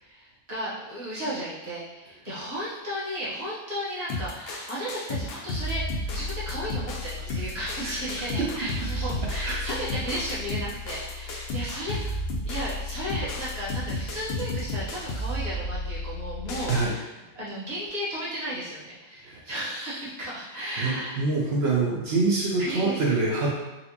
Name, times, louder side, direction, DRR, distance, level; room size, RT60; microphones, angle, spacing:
voice 1, 0.0-5.8 6.1-12.2 12.4-21.2 22.6-23.2, equal, 35° right, -9 dB, 1.1 m, -34 dB
sound 1, 4.1-16.9, left 2 dB, 60° left, 0.7 m, -32 dB
voice 2, 20.8-23.5, right 3 dB, 60° right, -4 dB, 0.8 m, -25 dB
4.1 x 2.0 x 2.8 m, 1.0 s
omnidirectional pair, 1.3 m